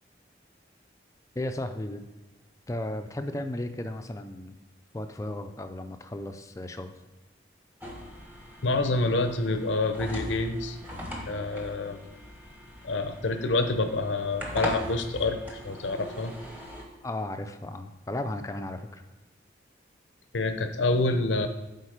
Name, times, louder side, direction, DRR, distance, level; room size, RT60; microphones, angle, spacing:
voice 1, 1.4-2.0 2.7-4.6 4.9-6.9 17.0-19.0, left 1 dB, 15° left, 7 dB, 0.4 m, -35 dB
sound 1, 7.8-16.8, equal, 10° right, 1.1 m, -40 dB
voice 2, 8.6-10.8 11.2-12.0 12.8-16.3 20.3-21.5, left 2 dB, 90° left, 8 dB, 0.7 m, -27 dB
8.8 x 4.0 x 5.0 m, 1.1 s
head